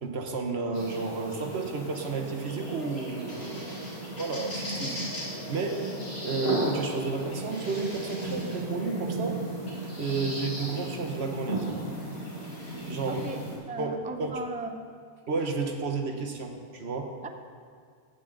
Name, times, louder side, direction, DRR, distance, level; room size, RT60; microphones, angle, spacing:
voice 1, 0.0-3.8 4.1-5.0 5.5-5.9 6.2-9.4 10.0-11.7 12.9-13.3 13.8-14.4 15.3-17.2, right 4 dB, 75° right, 3 dB, 1.4 m, -32 dB
sound 1, 0.7-13.6, right 1 dB, 70° left, 3.8 m, -35 dB
voice 2, 13.1-14.8 17.2-17.3, right 2 dB, 10° right, 6 dB, 0.4 m, -37 dB
16.5 x 8.3 x 3.9 m, 2.1 s
omnidirectional pair, 1.1 m